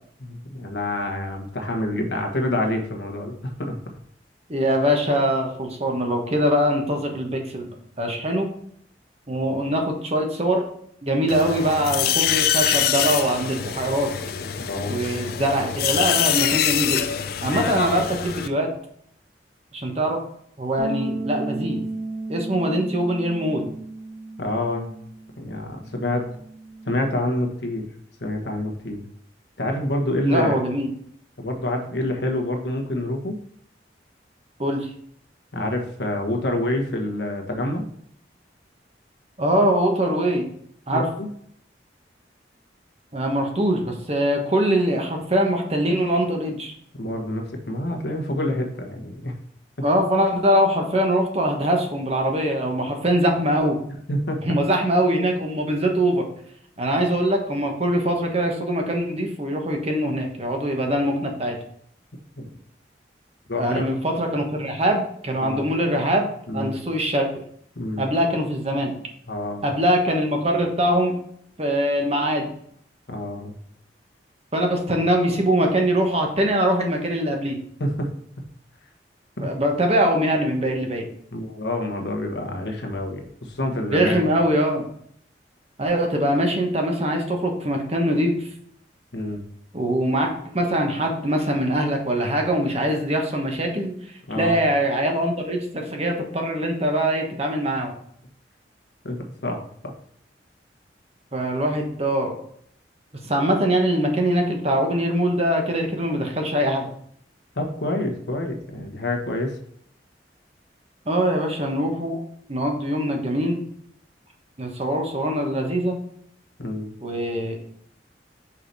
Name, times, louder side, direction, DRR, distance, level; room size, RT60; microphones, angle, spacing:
voice 1, 0.2-3.8 14.7-15.0 24.4-24.9 25.4-26.3 26.8-27.9 28.2-29.0 29.6-30.5 31.4-33.4 35.5-37.9 40.9-41.3 47.0-49.3 54.1-54.4 62.4-62.5 63.5-63.9 65.4-65.7 66.5-66.7 67.8-68.0 69.3-69.7 73.1-73.5 77.8-78.1 79.4-79.5 81.3-84.2 89.1-89.4 94.3-94.6 99.0-99.6 107.5-109.6 116.6-116.9, left 1 dB, 75° left, 3 dB, 1.3 m, -27 dB
voice 2, 4.5-7.7 8.0-8.5 9.3-10.6 11.0-14.1 14.9-17.0 17.4-18.7 19.7-20.2 20.6-21.8 22.3-23.7 30.2-30.9 34.6-34.9 39.4-40.5 40.9-41.1 43.1-46.7 49.8-53.8 54.4-56.3 56.8-61.6 63.5-67.3 68.0-68.9 69.6-71.1 71.6-72.5 74.5-77.6 79.4-81.1 83.9-84.9 85.8-88.5 89.7-93.9 94.3-97.9 101.3-102.4 103.2-106.9 111.1-112.2 112.5-113.6 114.6-116.0 117.0-117.6, equal, 35° right, 2 dB, 1.2 m, -22 dB
sound 1, 11.3-18.5, left 9 dB, 55° left, 0.5 m, -24 dB
Bass guitar, 20.8-27.0, right 2 dB, 85° right, 1.6 m, -34 dB
5.8 x 4.9 x 4.1 m, 0.66 s
head